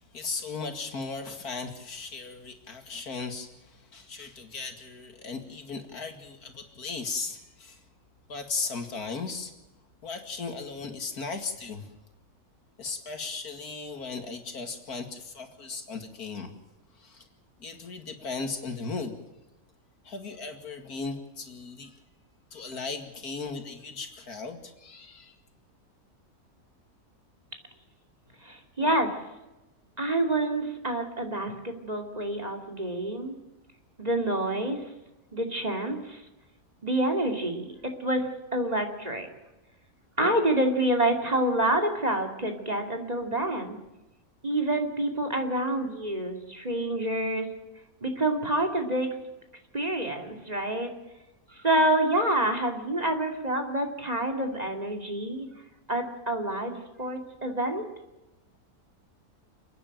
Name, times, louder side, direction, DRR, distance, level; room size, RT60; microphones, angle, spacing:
voice 1, 0.1-7.8 8.3-9.5 10.0-12.0 12.8-16.5 16.9-17.3 17.6-19.2 20.0-21.9 22.5-25.4, left 4 dB, 80° left, 6 dB, 2.7 m, -37 dB
voice 2, 28.4-29.1 30.0-33.3 34.0-34.8 35.3-36.2 36.8-39.3 40.2-43.8 44.4-47.5 48.0-49.1 49.7-50.9 51.5-55.5 55.9-57.9, right 1 dB, 25° right, 4 dB, 2.8 m, -27 dB
29.5 x 10.0 x 9.0 m, 1.0 s
omnidirectional pair, 1.6 m